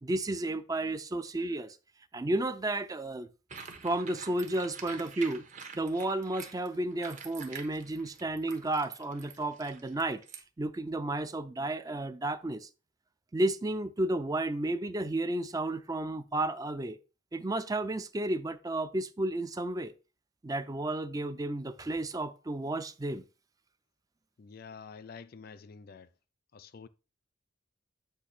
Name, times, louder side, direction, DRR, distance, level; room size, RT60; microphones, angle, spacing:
voice 1, 0.0-1.8 2.1-3.3 3.8-5.5 5.7-10.2 10.6-12.7 13.3-17.0 17.3-19.9 20.4-23.2, right 2 dB, 20° right, 0.4 m, -32 dB
sound 1, 3.5-10.4, right 5 dB, 40° right, 1.1 m, -47 dB
voice 2, 24.4-26.1 26.5-26.9, left 5 dB, 50° left, 0.4 m, -48 dB
8.2 x 3.1 x 5.9 m
head